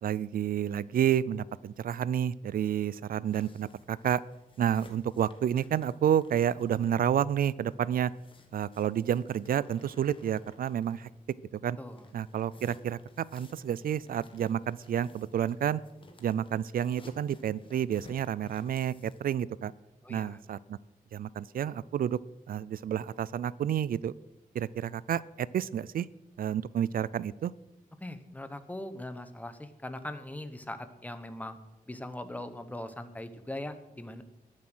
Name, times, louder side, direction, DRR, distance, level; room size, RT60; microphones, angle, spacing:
voice 1, 0.0-4.2 4.6-8.1 8.5-11.1 11.5-11.8 12.1-15.8 16.2-19.7 20.1-20.8 21.1-22.2 22.5-24.1 24.5-26.1 26.4-27.5, right 9 dB, 75° right, 20 dB, 0.4 m, -30 dB
sound 1, 3.2-11.4 11.9-19.3, left 2 dB, 35° left, 1.5 m, -58 dB
voice 2, 11.8-12.1 20.0-20.4 28.0-31.6 31.9-34.2, left 1 dB, 10° left, 10 dB, 0.9 m, -40 dB
20.0 x 7.4 x 6.2 m, 0.97 s
wide cardioid pair, 180°, 15 cm